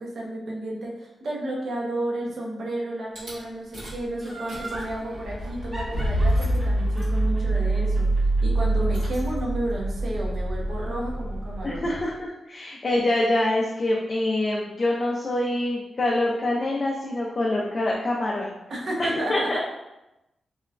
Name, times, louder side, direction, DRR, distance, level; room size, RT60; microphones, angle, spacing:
voice 1, 0.0-8.1 8.4-11.9 18.7-19.6, right 1 dB, 55° right, -3 dB, 0.6 m, -32 dB
Rattle / Car / Engine starting, 3.2-3.3 3.7-4.1 4.3-12.1, right 1 dB, 85° right, 1.4 m, -26 dB
Laughter, 4.2-4.9 5.7-8.8 9.2-9.3, right 2 dB, 15° right, 0.7 m, -39 dB
voice 2, 11.6-18.6 19.3-19.6, left 1 dB, 35° left, -3 dB, 0.3 m, -25 dB
2.9 x 2.2 x 2.3 m, 0.95 s
wide cardioid pair, 150°, 0 cm